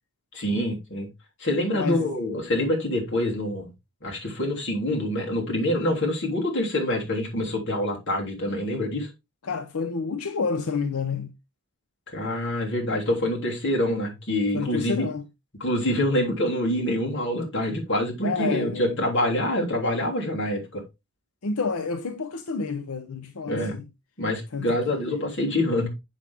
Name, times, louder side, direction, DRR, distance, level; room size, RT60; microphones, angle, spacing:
voice 1, 0.3-1.1 1.4-3.7 4.0-9.1 12.1-15.1 15.6-20.8 23.5-23.8 24.2-25.9, left 1 dB, 60° left, 3.1 m, -26 dB
voice 2, 1.7-2.3 9.4-11.3 14.5-15.2 18.2-19.0 21.4-23.9 24.5-25.3, left 4 dB, 85° left, 0.7 m, -30 dB
7.2 x 6.1 x 3.5 m
head